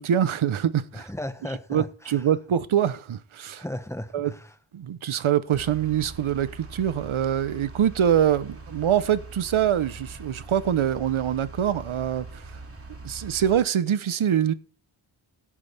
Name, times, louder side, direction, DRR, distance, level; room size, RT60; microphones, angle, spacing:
voice 1, 0.0-1.1 1.7-3.6 4.1-4.3 4.7-12.4 13.0-14.5, right 9 dB, 85° right, 1.1 m, -24 dB
voice 2, 0.9-2.3 3.5-4.6, left 1 dB, 5° left, 1.4 m, -36 dB
sound 1, 5.5-13.6, right 2 dB, 30° right, 2.5 m, -42 dB
17.0 x 8.4 x 3.5 m
wide cardioid pair, 100°, 47 cm